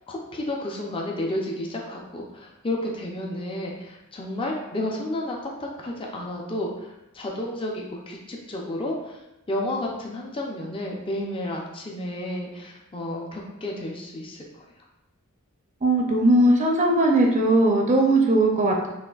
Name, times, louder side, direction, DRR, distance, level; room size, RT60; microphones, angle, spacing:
voice 1, 0.1-9.2 9.5-14.6, left 1 dB, 25° left, -1 dB, 0.5 m, -31 dB
voice 2, 15.8-18.9, right 1 dB, 35° right, 0 dB, 0.5 m, -19 dB
6.2 x 2.5 x 2.3 m, 0.93 s
head